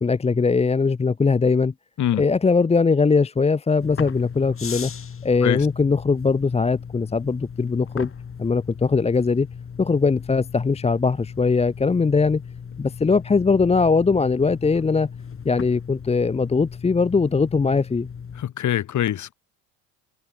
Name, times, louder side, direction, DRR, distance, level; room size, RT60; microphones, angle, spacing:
voice 1, 0.0-1.7 2.2-4.9 5.2-8.1 8.4-9.5 9.8-12.4 12.8-15.1 15.4-18.1, left 4 dB, 15° left, 0.8 m, -20 dB
sound 1, 3.8-18.4, left 6 dB, 35° left, 6.7 m, -37 dB
voice 2, 18.3-19.3, left 11 dB, 50° left, 4.5 m, -24 dB
supercardioid pair, 80°, 36 cm